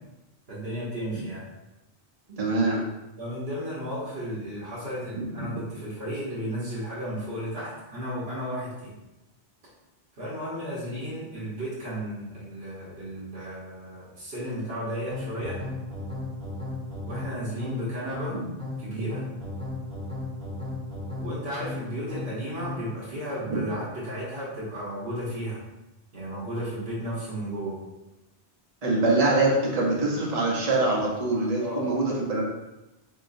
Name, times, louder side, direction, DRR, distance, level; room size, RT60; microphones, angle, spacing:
voice 1, 0.5-1.5 3.2-8.9 10.2-15.6 17.1-18.4 18.8-19.2 21.2-25.6 26.1-27.8 31.6-31.9, equal, 70° right, -9 dB, 1.4 m, -34 dB
voice 2, 2.3-2.8 5.1-5.5 23.5-23.6 28.8-32.5, right 2 dB, 40° right, -3 dB, 0.9 m, -24 dB
sound 1, 15.1-23.0, left 2 dB, 5° left, 0.7 m, -35 dB
3.9 x 3.7 x 2.6 m, 0.97 s
omnidirectional pair, 1.0 m